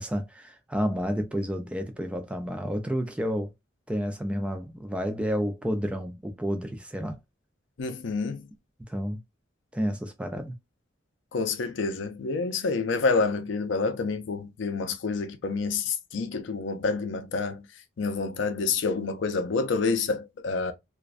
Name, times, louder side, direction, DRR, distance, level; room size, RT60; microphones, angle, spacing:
voice 1, 0.0-3.5 3.9-7.2 8.9-9.2 9.7-10.5, equal, 5° right, 0.3 m, -30 dB
voice 2, 7.8-8.5 11.3-17.6 18.0-20.7, left 4 dB, 70° left, 0.4 m, -28 dB
2.4 x 2.1 x 2.4 m
head